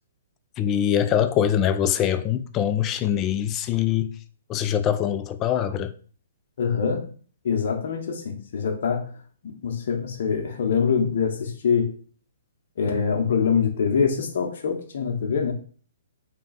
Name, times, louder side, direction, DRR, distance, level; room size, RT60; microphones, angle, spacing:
voice 1, 0.6-4.2 4.5-5.9, left 10 dB, 25° left, 0.3 m, -23 dB
voice 2, 6.6-7.1 7.4-9.1 9.4-11.9 12.8-15.5, left 6 dB, 60° left, 0.8 m, -24 dB
3.2 x 2.3 x 4.0 m
hypercardioid pair, 135°, 0 cm